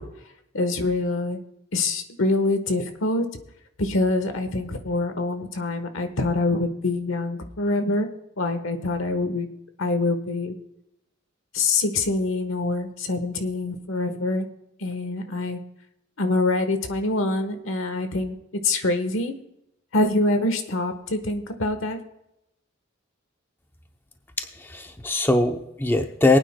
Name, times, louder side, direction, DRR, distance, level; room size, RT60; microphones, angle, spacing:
voice 1, 0.5-1.4 1.7-3.2 3.8-8.1 8.4-9.5 9.8-10.6 11.5-14.5 14.8-15.6 16.2-18.4 18.6-19.3 19.9-22.0, left 2 dB, 70° left, 8 dB, 1.2 m, -25 dB
voice 2, 24.4-26.4, left 2 dB, 10° left, 5 dB, 0.6 m, -22 dB
23.0 x 9.1 x 2.2 m, 0.86 s
head